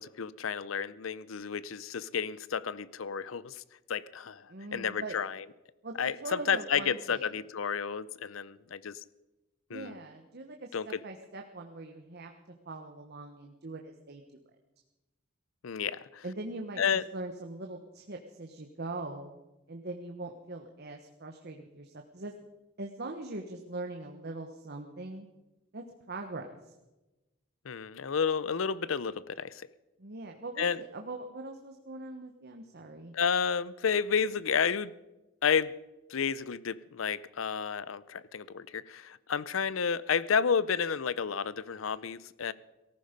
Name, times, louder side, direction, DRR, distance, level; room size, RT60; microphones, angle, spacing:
voice 1, 0.0-3.6 3.9-5.4 6.0-9.0 9.7-10.0 10.7-11.0 15.6-16.2 16.8-17.1 27.6-29.7 30.6-30.8 33.1-34.9 35.4-35.7 36.1-42.5, left 6 dB, 85° left, 0.6 m, -31 dB
voice 2, 4.5-5.2 5.8-7.2 9.7-12.3 12.6-14.2 16.2-19.3 19.7-22.5 22.8-25.3 25.7-26.6 30.0-33.1, right 2 dB, 55° right, 1.2 m, -42 dB
18.0 x 14.5 x 5.2 m
head